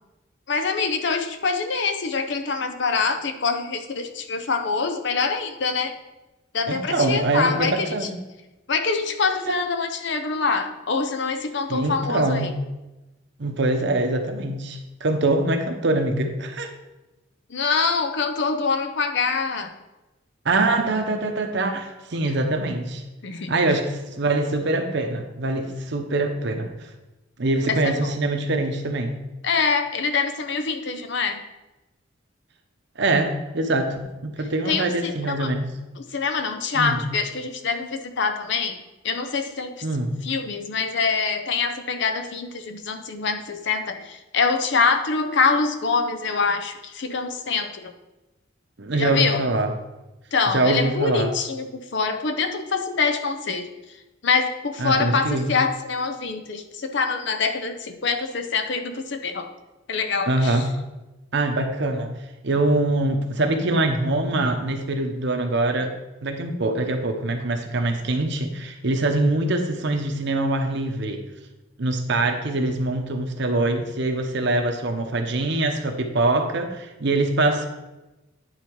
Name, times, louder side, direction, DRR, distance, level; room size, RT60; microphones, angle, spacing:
voice 1, 0.5-5.9 6.5-7.9 8.7-12.5 17.5-19.7 23.2-23.5 27.7-28.1 29.4-31.4 34.7-35.1 35.4-35.5 36.1-38.8 39.0-39.7 40.3-47.9 48.9-49.4 50.3-53.7 54.2-59.5 59.9-60.6, left 4 dB, 60° left, 7 dB, 0.7 m, -25 dB
voice 2, 6.7-8.2 9.5-9.6 11.7-12.5 13.4-16.7 20.4-23.0 23.5-26.7 27.4-29.2 33.0-35.7 36.7-37.0 39.8-40.2 48.8-49.7 50.5-51.3 54.8-55.5 60.3-60.7 61.3-62.1 62.4-71.2 71.8-77.7, right 2 dB, 60° right, 5 dB, 0.9 m, -24 dB
9.6 x 4.1 x 4.7 m, 1.0 s
head